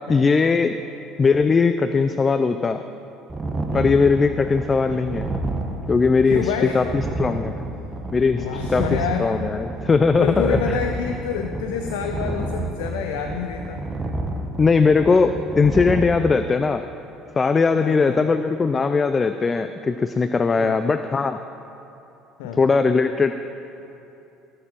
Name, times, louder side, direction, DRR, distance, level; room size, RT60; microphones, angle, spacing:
voice 1, 0.1-0.8 1.2-2.8 3.7-5.3 5.9-6.8 7.2-7.6 8.1-8.8 9.2-10.8 14.6-16.8 17.4-21.4 22.6-23.5, left 4 dB, 30° left, 10 dB, 0.4 m, -19 dB
sound 1, 3.3-16.0, right 2 dB, 25° right, 1.2 m, -29 dB
voice 2, 6.3-6.8 8.3-9.3 10.2-13.9 17.8-18.3 20.5-20.9 22.4-22.6, left 7 dB, 85° left, 4 dB, 0.6 m, -28 dB
18.5 x 6.8 x 4.5 m, 2.9 s
supercardioid pair, 80°, 0 cm